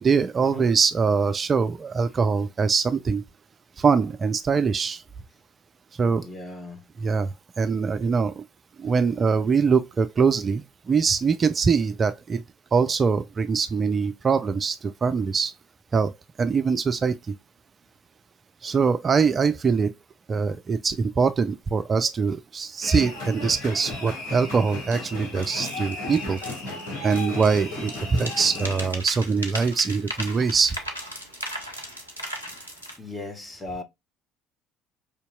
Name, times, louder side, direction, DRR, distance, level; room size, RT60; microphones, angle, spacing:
voice 1, 0.0-3.2 3.8-5.0 6.0-6.3 7.0-7.3 7.6-8.4 8.8-12.4 12.7-15.5 15.9-16.1 16.4-17.2 18.6-19.9 20.3-26.4 27.0-30.7, right 5 dB, 30° right, 0.4 m, -23 dB
voice 2, 6.2-6.9 33.0-33.8, left 2 dB, 15° left, 1.2 m, -37 dB
sound 1, 22.8-28.9, left 2 dB, 60° left, 1.7 m, -34 dB
sound 2, 24.9-25.0 25.4-27.6 27.9-33.0, equal, 90° left, 0.7 m, -37 dB
5.0 x 2.8 x 2.2 m
figure-of-eight pair, 60°, 0 cm